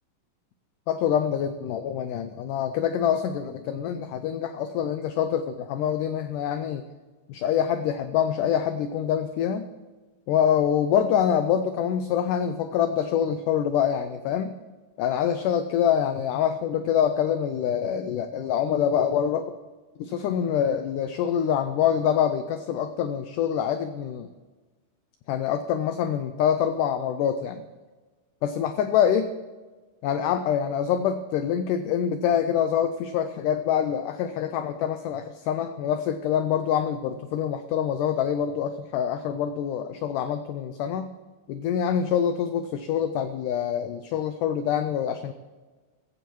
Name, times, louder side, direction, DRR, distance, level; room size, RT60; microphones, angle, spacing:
voice 1, 0.9-6.8 7.3-9.7 10.3-14.5 15.0-19.5 20.0-24.3 25.3-27.6 28.4-29.3 30.0-41.1 41.5-45.3, left 9 dB, 85° left, 9 dB, 1.8 m, -25 dB
15.0 x 15.0 x 3.1 m, 1.3 s
omnidirectional pair, 4.3 m